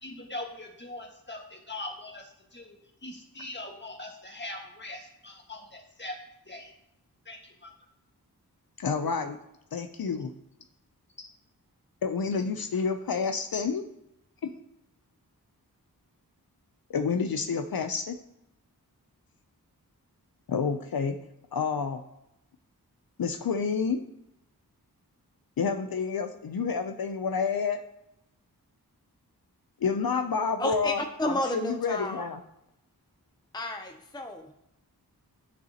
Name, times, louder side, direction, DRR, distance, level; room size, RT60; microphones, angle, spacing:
voice 1, 0.0-6.2 6.5-6.7 7.3-7.7 11.2-11.3, left 2 dB, 30° left, 1 dB, 1.7 m, -41 dB
voice 2, 8.8-9.4 9.7-10.3 12.0-13.8 14.4-14.5 16.9-18.2 20.5-21.2 21.5-22.0 23.2-24.0 25.6-27.8 29.8-32.4, left 5 dB, 65° left, 6 dB, 0.6 m, -29 dB
voice 3, 30.6-32.2 33.5-34.5, left 1 dB, 10° left, 5 dB, 0.6 m, -31 dB
9.5 x 6.7 x 2.9 m, 0.83 s
wide cardioid pair, 55°, 38 cm